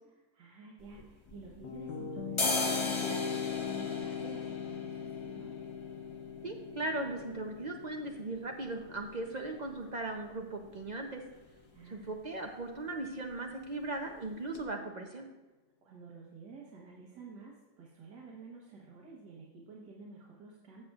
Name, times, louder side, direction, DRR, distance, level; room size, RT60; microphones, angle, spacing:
voice 1, 0.1-5.6 11.7-12.2 15.8-20.9, right 4 dB, 85° right, -3 dB, 1.8 m, -51 dB
sound 1, 0.8-1.9 2.2-9.9 10.2-10.3 10.6-11.2 11.5-11.7 11.9-12.2 12.5-13.2 13.5-13.7 14.2-14.3 14.5-14.6, left 2 dB, 30° left, 0.5 m, -39 dB
sound 2, 1.3-10.4, left 8 dB, 90° left, 1.4 m, -40 dB
voice 2, 6.4-11.2 11.9-15.3, right 2 dB, 60° right, 2 dB, 0.4 m, -38 dB
15.0 x 6.6 x 2.4 m, 1.1 s
omnidirectional pair, 1.8 m